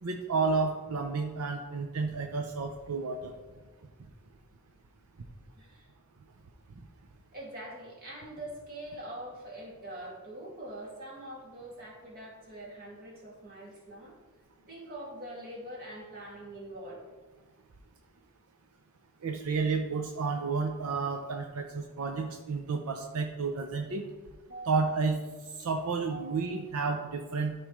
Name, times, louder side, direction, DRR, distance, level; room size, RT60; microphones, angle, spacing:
voice 1, 0.0-3.3 19.2-24.0 24.7-25.2 25.6-27.5, right 4 dB, 85° right, 4 dB, 0.6 m, -31 dB
voice 2, 5.6-5.9 7.3-14.2 14.7-17.0 24.5-24.9 26.1-26.4, right 1 dB, 45° right, -3 dB, 2.3 m, -44 dB
12.5 x 4.9 x 3.1 m, 1.3 s
head